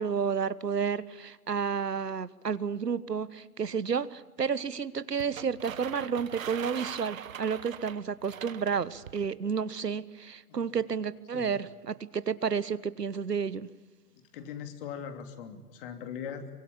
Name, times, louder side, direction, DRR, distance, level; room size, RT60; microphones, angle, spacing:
voice 1, 0.0-13.7, right 6 dB, 85° right, 17 dB, 1.3 m, -31 dB
sound 1, 5.2-9.3, right 9 dB, 55° right, 1.5 m, -42 dB
voice 2, 14.3-16.5, left 7 dB, 35° left, 7 dB, 3.1 m, -40 dB
24.5 x 24.0 x 8.6 m, 1.2 s
figure-of-eight pair, 130°, 47 cm